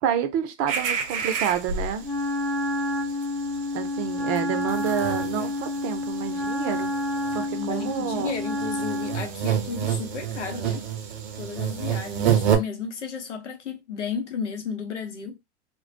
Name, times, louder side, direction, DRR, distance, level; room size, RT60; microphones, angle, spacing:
voice 1, 0.0-2.1 3.7-6.9 7.3-8.3, right 9 dB, 40° right, 0.6 m, -28 dB
sound 1, 0.7-2.2 2.6-2.8 3.1-12.6, right 8 dB, 70° right, 0.8 m, -29 dB
Wind instrument woodwind instrument, 2.0-9.3, left 2 dB, 5° left, 0.8 m, -29 dB
voice 2, 7.5-10.9 11.4-15.4, left 6 dB, 90° left, 0.8 m, -33 dB
2.2 x 2.1 x 2.6 m
hypercardioid pair, 105°, 35 cm